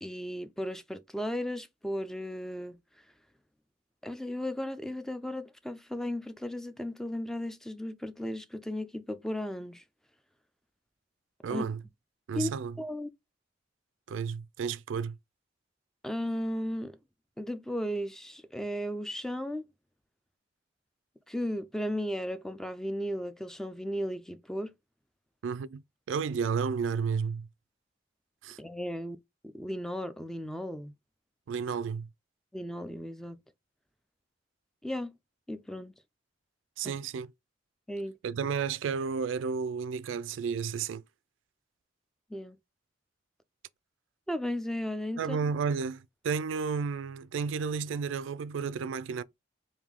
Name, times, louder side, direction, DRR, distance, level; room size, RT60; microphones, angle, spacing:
voice 1, 0.0-2.8 4.0-9.8 11.5-11.6 12.3-12.5 12.8-13.1 16.0-17.0 17.4-19.6 21.3-24.7 28.6-29.2 29.5-30.9 32.5-33.4 34.8-35.2 35.5-35.9 36.8-37.0 37.9-38.1 42.3-42.6 44.3-45.4, equal, 5° left, 0.3 m, -35 dB
voice 2, 11.4-11.8 12.3-12.8 14.1-15.2 25.4-25.8 26.1-27.5 28.4-28.6 31.5-32.1 36.8-37.3 38.2-41.0 45.2-49.2, right 6 dB, 85° right, 0.3 m, -32 dB
3.5 x 2.6 x 3.6 m
head